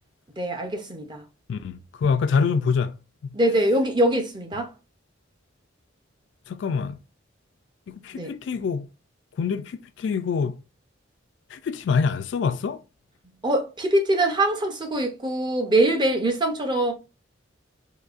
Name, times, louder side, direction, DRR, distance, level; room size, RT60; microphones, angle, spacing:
voice 1, 0.4-1.2 3.3-4.7 8.2-8.3 13.4-16.9, right 1 dB, 25° right, 0.6 m, -23 dB
voice 2, 1.5-3.0 6.5-7.0 7.9-8.9 9.4-10.6 11.5-12.8, left 5 dB, 60° left, 0.3 m, -25 dB
3.9 x 2.6 x 2.4 m
head